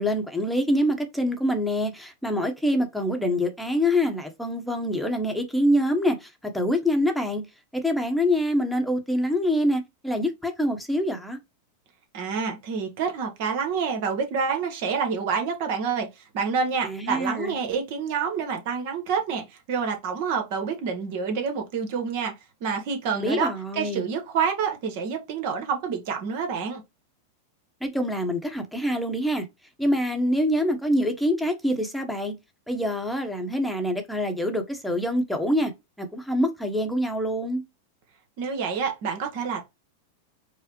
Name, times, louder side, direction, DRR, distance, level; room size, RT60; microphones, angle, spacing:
voice 1, 0.0-7.4 7.7-11.4 16.8-17.6 23.1-24.0 27.8-29.4 29.8-32.3 32.7-35.7 36.0-37.6, equal, ahead, 0.9 m, -25 dB
voice 2, 12.1-22.3 22.6-26.8 38.4-39.7, right 6 dB, 60° right, 1.1 m, -28 dB
4.7 x 2.1 x 3.0 m
hypercardioid pair, 100°, 0 cm